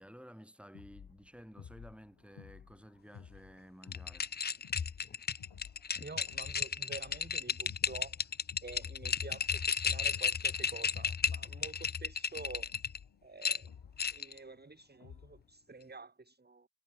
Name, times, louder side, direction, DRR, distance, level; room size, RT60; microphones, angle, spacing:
voice 1, 0.0-4.3, equal, ahead, 5.7 m, -54 dB
sound 1, 0.7-15.5, left 7 dB, 65° left, 1.7 m, -55 dB
sound 2, 3.8-13.0 13.4-14.4, left 6 dB, 25° left, 0.3 m, -34 dB
voice 2, 6.0-8.3 8.6-12.7 13.2-13.8 14.1-16.7, right 3 dB, 20° right, 1.2 m, -49 dB
cardioid pair, 40°, 48 cm